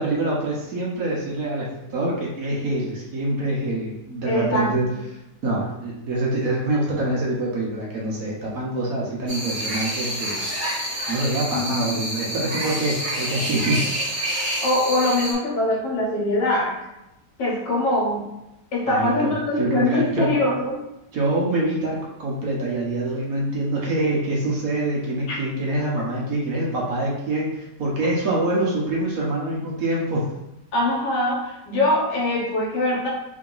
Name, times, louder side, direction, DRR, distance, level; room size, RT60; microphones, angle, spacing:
voice 1, 0.0-4.9 5.4-10.4 11.1-13.8 18.9-20.3 21.1-30.3, right 2 dB, 60° right, -3 dB, 1.2 m, -25 dB
voice 2, 4.3-4.7 11.5-12.0 14.6-16.7 17.4-18.3 18.7-20.8 25.3-25.4 30.7-33.1, left 1 dB, 75° left, -4 dB, 1.8 m, -23 dB
sound 1, 9.3-15.3, right 1 dB, 30° right, 1.3 m, -28 dB
3.8 x 2.8 x 3.8 m, 0.89 s
omnidirectional pair, 1.9 m